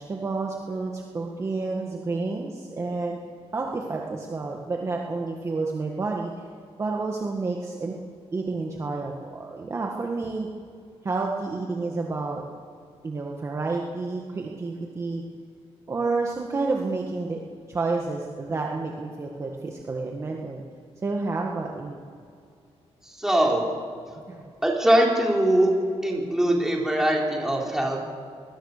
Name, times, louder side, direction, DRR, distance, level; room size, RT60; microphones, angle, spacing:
voice 1, 0.0-3.2 3.5-6.3 6.8-8.0 8.3-10.5 11.0-12.4 13.0-15.2 15.9-17.4 17.7-20.6 21.0-22.0 24.3-24.4, right 3 dB, 25° right, 0 dB, 1.7 m, -30 dB
voice 2, 23.2-23.7 24.6-25.7 26.0-28.0, right 1 dB, 5° right, -2 dB, 3.7 m, -22 dB
26.0 x 21.0 x 6.7 m, 2.4 s
wide cardioid pair, 180°, 11 cm